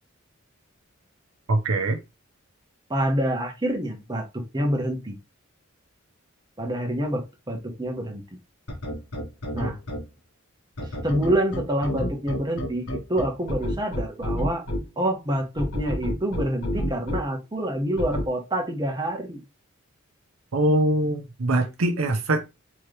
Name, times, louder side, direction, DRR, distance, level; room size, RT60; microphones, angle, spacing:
voice 1, 1.5-2.0 20.5-22.5, right 1 dB, 80° right, 0.7 m, -23 dB
voice 2, 2.9-5.1 6.6-8.2 9.5-9.8 11.0-12.8 13.1-14.6 15.0-19.4, right 1 dB, 20° right, 1.0 m, -27 dB
sound 1, 8.7-10.0 10.8-14.8 15.6-17.2 18.0-18.2, equal, 90° left, 1.4 m, -28 dB
3.8 x 3.1 x 3.2 m
head